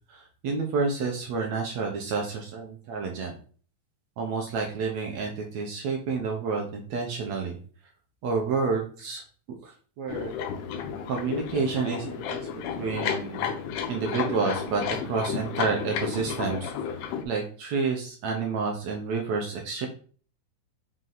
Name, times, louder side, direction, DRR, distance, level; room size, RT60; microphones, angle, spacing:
voice 1, 0.1-3.4 4.2-7.6 8.2-9.2 9.6-10.3 11.1-13.5 13.9-16.7 17.0-19.9, right 4 dB, 70° right, 1 dB, 1.7 m, -29 dB
sound 1, 10.1-17.2, left 7 dB, 75° left, 2.1 m, -32 dB
5.5 x 4.8 x 4.0 m, 0.42 s
omnidirectional pair, 4.3 m